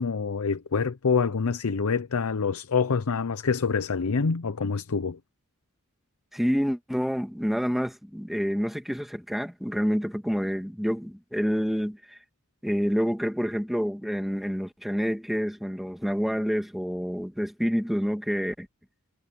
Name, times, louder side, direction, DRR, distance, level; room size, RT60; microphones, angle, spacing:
voice 1, 0.0-5.2, left 5 dB, 70° left, 0.6 m, -26 dB
voice 2, 6.3-12.2 12.6-18.7, equal, ahead, 1.9 m, -28 dB
head